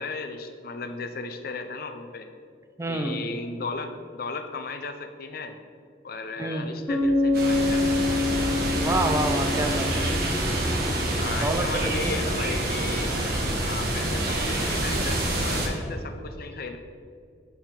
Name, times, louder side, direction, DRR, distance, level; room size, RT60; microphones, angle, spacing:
voice 1, 0.0-2.3 2.9-5.5 6.0-7.8 11.2-13.2 13.6-16.8, left 3 dB, 55° left, 7 dB, 0.6 m, -35 dB
voice 2, 2.8-3.2 6.4-6.7 8.7-9.9 11.4-11.7 12.0-12.2, right 2 dB, 15° right, 5 dB, 0.4 m, -27 dB
Bass guitar, 6.9-10.7, left 3 dB, 15° left, 1.3 m, -26 dB
sound 1, 7.3-15.7, right 1 dB, 55° right, 1.5 m, -27 dB
8.5 x 5.7 x 4.4 m, 2.3 s
head